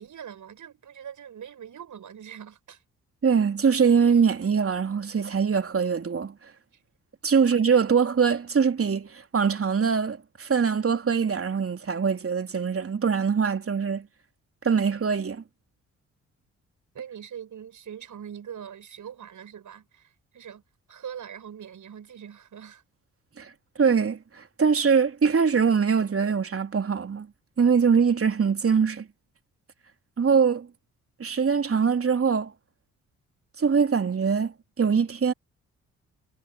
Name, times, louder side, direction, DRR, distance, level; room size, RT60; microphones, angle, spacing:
voice 1, 0.0-2.8 6.7-6.8 16.9-20.6 20.9-22.8, right 8 dB, 50° right, 6.2 m, -42 dB
voice 2, 3.2-6.3 7.2-14.1 14.6-15.4 23.4-23.5 23.8-27.3 27.6-29.1 30.2-30.7 31.2-32.5 33.6-35.3, right 6 dB, 35° right, 3.5 m, -23 dB
figure-of-eight pair, 40°, 38 cm